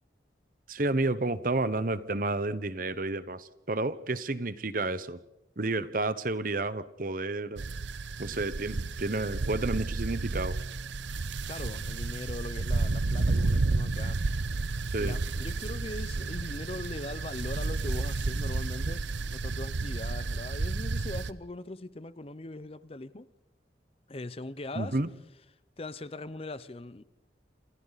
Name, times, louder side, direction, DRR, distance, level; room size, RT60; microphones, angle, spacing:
voice 1, 0.7-5.2 5.6-7.6 8.2-10.6 14.9-15.2 24.7-25.1, right 2 dB, 50° right, 1.1 m, -31 dB
sound 1, 7.6-21.3, right 3 dB, 90° right, 0.8 m, -31 dB
voice 2, 11.5-14.4 15.0-23.3 24.1-25.0 25.8-27.1, left 2 dB, 35° left, 0.7 m, -40 dB
28.0 x 28.0 x 4.1 m
head